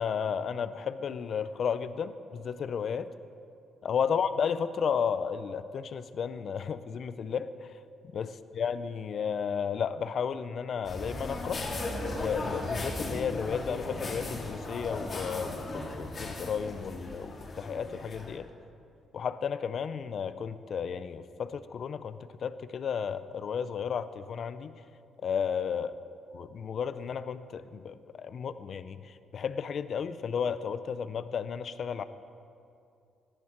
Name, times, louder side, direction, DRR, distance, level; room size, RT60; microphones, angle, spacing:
voice 1, 0.0-3.1 3.8-7.5 8.1-8.3 8.5-11.6 12.1-18.5 19.1-24.7 25.2-25.9 26.3-29.0 29.3-32.0, left 7 dB, 55° left, 13 dB, 0.6 m, -33 dB
sound 1, 10.8-18.4, left 2 dB, 40° left, 2.4 m, -37 dB
17.5 x 11.0 x 4.5 m, 2.5 s
cardioid pair, 90°, 0 cm